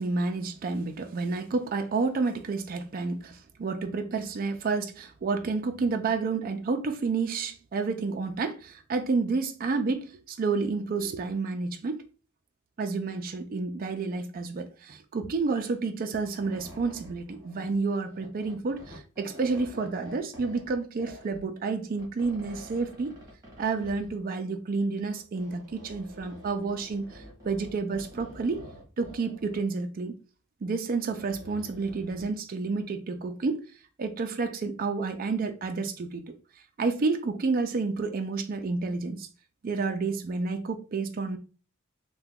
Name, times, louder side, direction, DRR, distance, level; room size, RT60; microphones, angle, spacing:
voice 1, 0.0-12.0 12.8-23.1 23.6-28.6 29.0-30.2 30.6-33.6 34.0-36.4 36.8-39.3 39.6-41.4, right 4 dB, 40° right, 0.4 m, -30 dB
sound 1, 16.1-21.4 21.9-24.3 25.0-29.6 30.9-32.4, equal, 15° right, 1.4 m, -48 dB
2.8 x 2.2 x 3.5 m
head